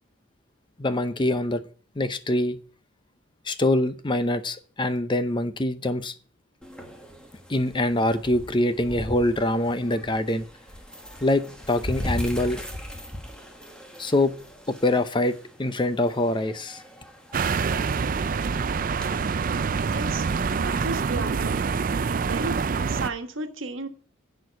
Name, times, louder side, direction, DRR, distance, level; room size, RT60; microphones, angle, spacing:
voice 1, 0.8-1.6 2.0-2.6 3.5-6.1 7.5-10.5 11.2-12.6 14.0-14.3 14.7-16.8, left 1 dB, 25° left, 0.7 m, -24 dB
sound 1, 6.6-19.3, left 1 dB, 5° left, 1.5 m, -39 dB
sound 2, 17.3-23.1, right 5 dB, 45° right, 0.4 m, -26 dB
voice 2, 19.8-20.3 20.5-21.6 22.1-22.5 22.9-23.9, right 3 dB, 75° right, 1.4 m, -33 dB
11.0 x 4.6 x 8.1 m
head